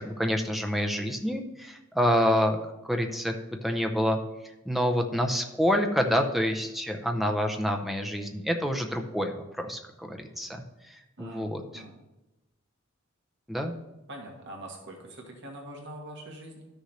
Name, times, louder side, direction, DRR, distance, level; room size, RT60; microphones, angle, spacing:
voice 1, 0.0-2.6 2.8-3.3 3.6-4.2 4.7-10.5 11.2-11.8 13.5-13.7, equal, ahead, 3 dB, 0.7 m, -27 dB
voice 2, 11.2-11.9 14.1-16.7, right 1 dB, 55° right, 0 dB, 1.6 m, -43 dB
12.5 x 6.6 x 3.2 m, 0.99 s
head